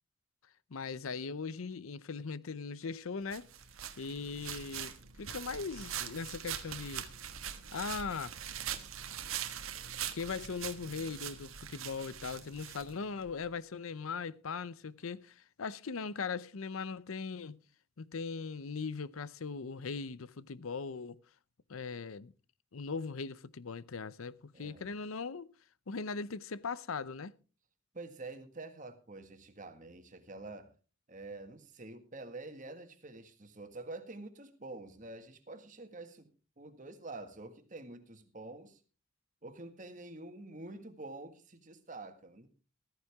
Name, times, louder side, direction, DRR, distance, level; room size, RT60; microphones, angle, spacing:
voice 1, 0.7-3.5 4.0-4.9 5.2-7.1 7.7-8.3 10.1-17.6 18.0-21.2 21.7-22.3 22.7-25.5 25.9-27.3, left 5 dB, 85° left, 0.7 m, -39 dB
sound 1, 3.3-13.3, right 9 dB, 90° right, 1.4 m, -42 dB
voice 2, 24.5-24.9 27.9-30.7 31.1-36.3 36.6-38.8 39.4-42.5, right 2 dB, 40° right, 1.7 m, -47 dB
14.5 x 14.0 x 3.5 m
head